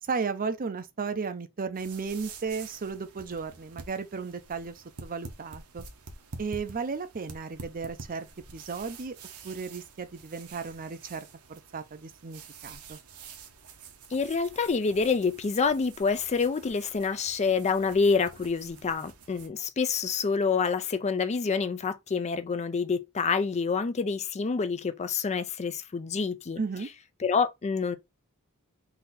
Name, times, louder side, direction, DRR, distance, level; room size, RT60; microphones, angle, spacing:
voice 1, 0.0-5.8 6.4-8.3 8.5-9.2 9.4-13.0 26.6-26.9, right 5 dB, 40° right, 0.5 m, -34 dB
sound 1, 1.7-19.5, right 4 dB, 70° right, 1.0 m, -48 dB
voice 2, 14.1-26.6 27.2-28.0, left 5 dB, 30° left, 0.4 m, -27 dB
4.0 x 2.7 x 4.0 m
head